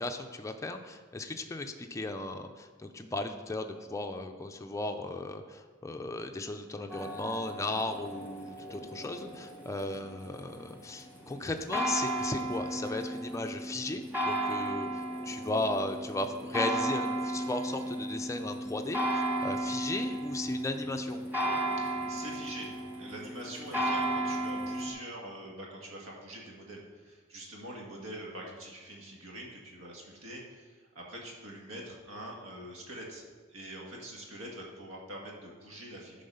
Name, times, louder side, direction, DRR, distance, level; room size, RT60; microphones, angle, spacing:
voice 1, 0.0-21.2, left 2 dB, 15° left, 5 dB, 0.4 m, -36 dB
sound 1, 6.9-24.9, right 1 dB, 10° right, 1.3 m, -34 dB
voice 2, 21.8-36.2, right 1 dB, 80° right, -2 dB, 1.6 m, -44 dB
10.0 x 4.0 x 5.5 m, 1.4 s
head